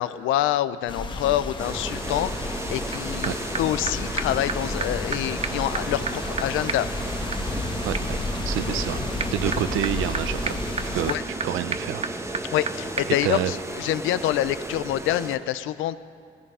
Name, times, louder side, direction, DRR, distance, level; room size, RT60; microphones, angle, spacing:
voice 1, 0.0-6.9 8.7-8.8 11.1-11.2 12.5-16.0, left 13 dB, 90° left, 15 dB, 0.5 m, -26 dB
sound 1, 0.9-11.1, left 2 dB, 25° left, 1.1 m, -32 dB
sound 2, 1.6-15.4, right 2 dB, 15° right, 0.9 m, -34 dB
sound 3, 2.9-3.0 3.2-3.3 3.5-3.6 3.9-4.0 4.2-4.3 4.5-4.6 4.8-4.9 5.1-5.2 5.4-12.7 13.0-13.1, right 5 dB, 30° right, 0.6 m, -34 dB
voice 2, 7.8-8.2 8.4-9.0 9.3-10.6 10.9-11.2 11.4-12.1 13.2-13.5, right 12 dB, 85° right, 13 dB, 0.5 m, -28 dB
15.5 x 13.5 x 5.5 m, 2.2 s
cardioid pair, 90°, 20 cm